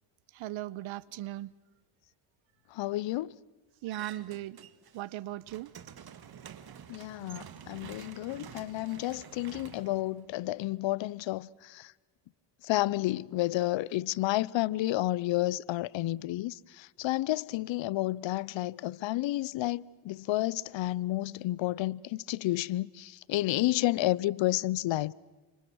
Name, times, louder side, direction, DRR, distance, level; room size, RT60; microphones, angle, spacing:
voice 1, 0.3-1.5 3.8-4.6 4.9-5.7, right 15 dB, 75° right, 1.0 m, -38 dB
voice 2, 2.7-3.3 6.9-11.9 12.6-25.1, left 16 dB, 65° left, 0.8 m, -31 dB
sound 1, 3.9-5.0 5.3-10.7, right 8 dB, 50° right, 1.9 m, -49 dB
29.5 x 26.5 x 6.3 m
cardioid pair, 100°, 48 cm